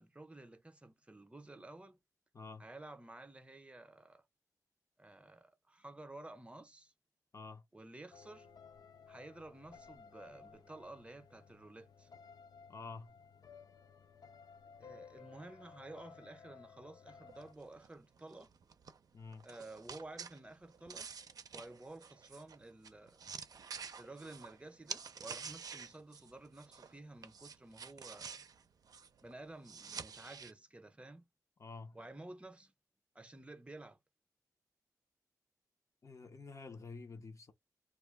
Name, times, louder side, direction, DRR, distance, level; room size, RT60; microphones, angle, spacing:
voice 1, 0.0-2.0 2.6-4.2 5.0-6.9 7.7-8.5 9.1-12.1 14.8-18.5 19.4-21.1 21.5-23.2 24.0-28.4 29.2-31.2 31.9-32.7 33.1-34.0, right 2 dB, 20° right, 0.7 m, -52 dB
voice 2, 2.3-2.6 7.3-7.6 12.7-13.1 19.1-19.5 31.6-32.0 36.0-37.5, left 4 dB, 50° left, 0.8 m, -49 dB
sound 1, 8.1-17.5, left 6 dB, 80° left, 0.4 m, -57 dB
sound 2, 17.3-27.0 27.2-30.5, right 6 dB, 70° right, 0.5 m, -49 dB
2.4 x 2.1 x 3.2 m
cardioid pair, 65°, 7 cm